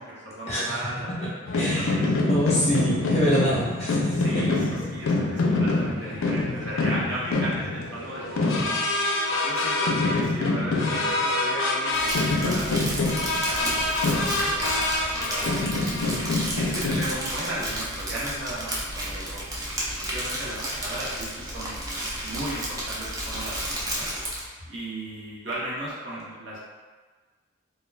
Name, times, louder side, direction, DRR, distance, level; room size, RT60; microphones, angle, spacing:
voice 1, 0.0-2.1 3.9-4.6 4.9-8.6 9.4-19.4 19.9-21.7 22.2-24.1 24.6-26.6, right 1 dB, 60° right, -7 dB, 0.8 m, -36 dB
sound 1, 1.5-17.1, left 2 dB, 80° left, 0.4 m, -25 dB
voice 2, 1.6-1.9 2.3-4.3, equal, 30° left, -6 dB, 0.6 m, -25 dB
Crumpling crinkling, 11.9-24.5, right 1 dB, 20° right, 0.3 m, -32 dB
2.2 x 2.2 x 3.2 m, 1.4 s
head